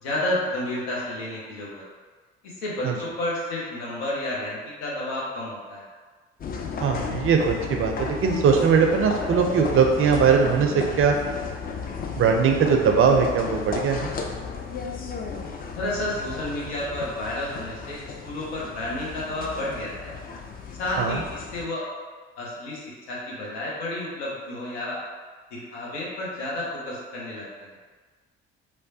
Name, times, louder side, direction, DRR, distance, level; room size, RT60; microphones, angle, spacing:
voice 1, 0.0-1.8 2.4-5.8 15.7-20.1 20.8-21.8 22.4-25.0 25.5-27.7, left 1 dB, 80° left, -5 dB, 0.7 m, -31 dB
sound 1, 6.4-21.7, left 5 dB, 30° left, 0.4 m, -34 dB
voice 2, 6.8-11.1 12.2-14.1 21.0-21.2, right 6 dB, 45° right, 3 dB, 0.4 m, -20 dB
3.0 x 2.1 x 2.6 m, 1.4 s
hypercardioid pair, 45°, 31 cm